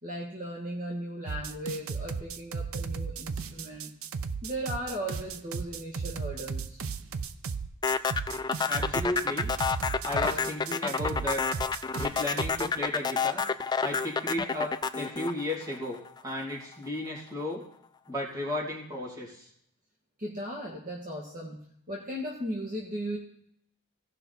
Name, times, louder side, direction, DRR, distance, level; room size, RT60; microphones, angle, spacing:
voice 1, 0.0-3.9 4.4-6.8 20.2-21.6 21.9-23.2, equal, 40° right, -2 dB, 1.6 m, -37 dB
sound 1, 1.3-12.7, right 5 dB, 65° right, 0.5 m, -35 dB
sound 2, 7.8-16.2, left 5 dB, 20° left, 0.3 m, -29 dB
voice 2, 8.7-9.5 10.0-11.4 12.0-13.4 13.8-17.6 18.1-19.5, left 1 dB, 15° right, -3 dB, 2.7 m, -34 dB
16.5 x 5.7 x 4.2 m, 0.71 s
head